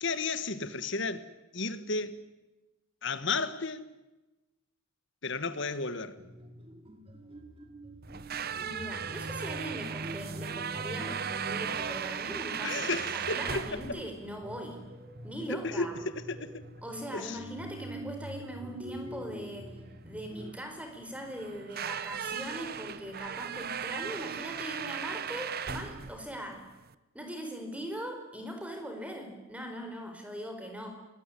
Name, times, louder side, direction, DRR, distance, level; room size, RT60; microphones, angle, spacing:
voice 1, 0.0-2.2 3.0-3.9 5.2-6.2 12.6-13.8 15.5-16.6 17.1-17.4, left 3 dB, 55° left, 1.5 m, -33 dB
sound 1, 6.2-20.5, equal, 25° right, 2.3 m, -47 dB
sound 2, 8.0-26.9, right 7 dB, 45° right, 0.9 m, -38 dB
voice 2, 8.6-14.8 15.2-15.9 16.8-19.8 20.0-26.6 27.1-30.9, equal, 5° right, 4.6 m, -40 dB
26.0 x 20.5 x 9.9 m
head